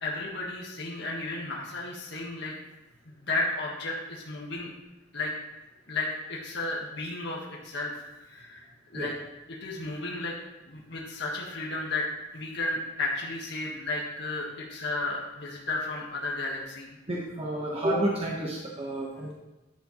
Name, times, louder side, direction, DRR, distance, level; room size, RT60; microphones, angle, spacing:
voice 1, 0.0-2.5 3.0-4.7 5.1-5.3 5.9-7.9 8.2-9.1 9.6-10.4 10.7-12.1 12.3-16.9, left 2 dB, 65° left, -3 dB, 1.6 m, -33 dB
voice 2, 17.1-19.3, right 1 dB, 30° right, -3 dB, 1.3 m, -30 dB
11.0 x 8.0 x 3.1 m, 1.0 s
head